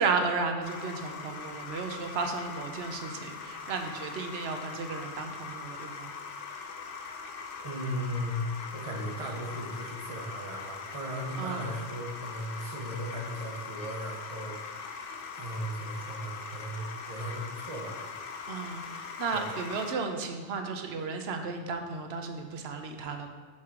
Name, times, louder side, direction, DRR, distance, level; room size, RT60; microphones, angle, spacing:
voice 1, 0.0-6.1 11.4-11.7 18.5-23.3, right 4 dB, 65° right, 5 dB, 0.9 m, -33 dB
sound 1, 0.6-19.9, left 5 dB, 60° left, 0.7 m, -41 dB
voice 2, 7.6-8.5 8.7-14.6 15.3-18.0 19.3-19.5, equal, 30° right, -1 dB, 0.9 m, -37 dB
5.7 x 4.6 x 4.8 m, 1.4 s
omnidirectional pair, 1.2 m